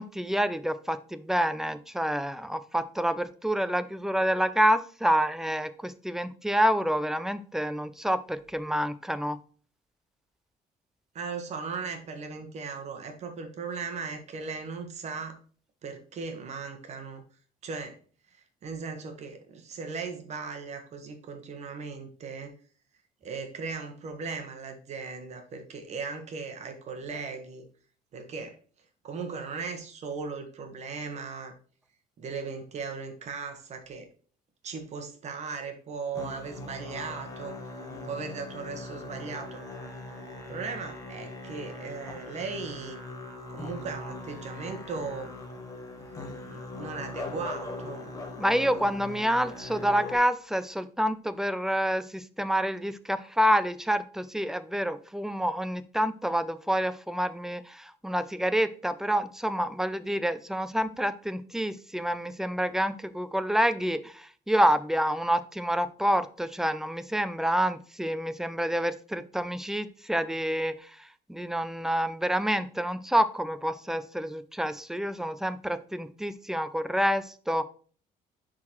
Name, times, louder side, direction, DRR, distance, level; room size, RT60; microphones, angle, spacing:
voice 1, 0.0-9.4 48.4-77.7, equal, 5° right, 13 dB, 0.3 m, -28 dB
voice 2, 11.1-15.4 15.8-17.2 17.6-17.9 18.6-22.5 23.2-27.6 28.1-28.6 29.0-31.5 32.2-34.1 34.6-37.6 38.0-39.6 40.5-43.0 43.5-45.3 46.5-48.1, right 5 dB, 45° right, 5 dB, 1.1 m, -37 dB
Musical instrument, 36.1-50.2, left 2 dB, 20° left, 1.2 m, -40 dB
10.5 x 3.8 x 2.9 m, 0.43 s
cardioid pair, 175°, 16 cm